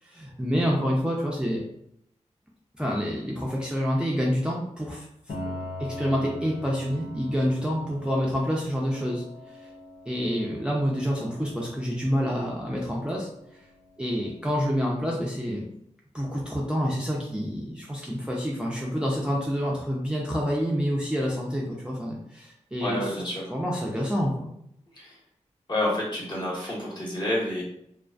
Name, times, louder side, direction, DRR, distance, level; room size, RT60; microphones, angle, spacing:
voice 1, 0.0-1.6 2.8-5.1 5.4-5.5 5.8-9.7 10.1-13.3 14.0-15.7 16.1-23.2 23.5-24.5, equal, 5° right, -3 dB, 0.5 m, -28 dB
Piano, 5.3-14.9, left 1 dB, 55° left, 0.6 m, -42 dB
voice 2, 22.8-23.4 24.9-25.2 25.7-27.6, left 1 dB, 35° left, -5 dB, 1.1 m, -29 dB
2.4 x 2.4 x 2.3 m, 0.74 s
cardioid pair, 60°, 12 cm